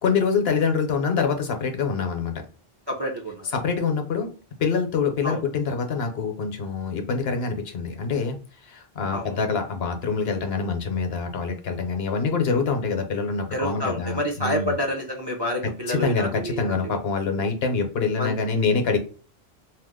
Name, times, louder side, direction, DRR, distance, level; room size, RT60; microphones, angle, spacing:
voice 1, 0.0-2.5 3.5-4.3 4.6-8.4 8.6-14.8 15.6-19.0, left 5 dB, 75° left, 5 dB, 1.0 m, -25 dB
voice 2, 2.9-3.5 5.2-5.4 9.1-9.4 13.5-17.0 18.1-18.3, equal, 35° right, 0 dB, 0.4 m, -28 dB
2.8 x 2.0 x 3.5 m, 0.38 s
omnidirectional pair, 1.1 m